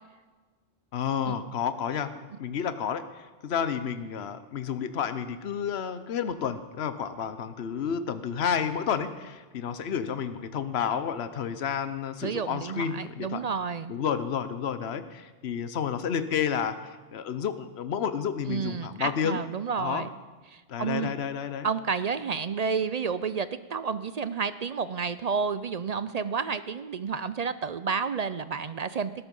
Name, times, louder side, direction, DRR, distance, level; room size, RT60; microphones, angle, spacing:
voice 1, 0.9-2.1 2.4-13.5 13.9-19.4 19.8-20.1 20.7-21.7, left 7 dB, 65° left, 11 dB, 1.1 m, -30 dB
voice 2, 12.2-14.0 18.5-20.1 20.5-21.1 21.6-29.3, right 6 dB, 50° right, 14 dB, 0.5 m, -30 dB
19.5 x 12.5 x 5.4 m, 1.3 s
omnidirectional pair, 1.2 m